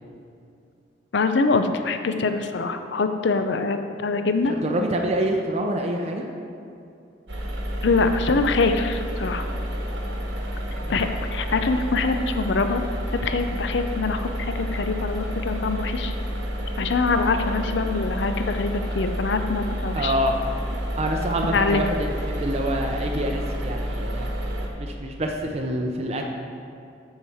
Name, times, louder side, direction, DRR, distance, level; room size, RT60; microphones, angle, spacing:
voice 1, 1.1-4.5 7.8-9.5 10.9-12.8 13.2-16.1 16.8-20.1 21.5-21.8, left 3 dB, 65° left, 8 dB, 0.5 m, -24 dB
voice 2, 4.5-6.3 19.9-20.4 21.0-24.3 24.8-26.3, right 1 dB, 35° right, 1 dB, 0.5 m, -26 dB
sound 1, 7.3-24.7, equal, 65° right, 1.2 m, -29 dB
7.1 x 4.8 x 7.1 m, 2.7 s
head